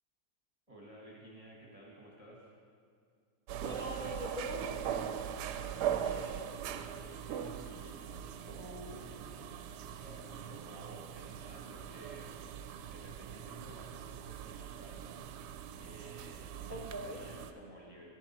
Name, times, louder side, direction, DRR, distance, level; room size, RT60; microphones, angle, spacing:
voice 1, 0.7-2.5 5.4-8.0 8.9-9.4 10.0-12.3 12.7-15.1 15.4-15.5 15.8-18.1, right 1 dB, 25° right, -3 dB, 1.1 m, -54 dB
sound 1, 3.5-17.5, right 9 dB, 85° right, 1.2 m, -41 dB
voice 2, 3.6-4.7 8.4-9.0 16.7-17.3, equal, 30° left, -3 dB, 1.3 m, -42 dB
10.5 x 9.5 x 4.2 m, 2.3 s
omnidirectional pair, 1.7 m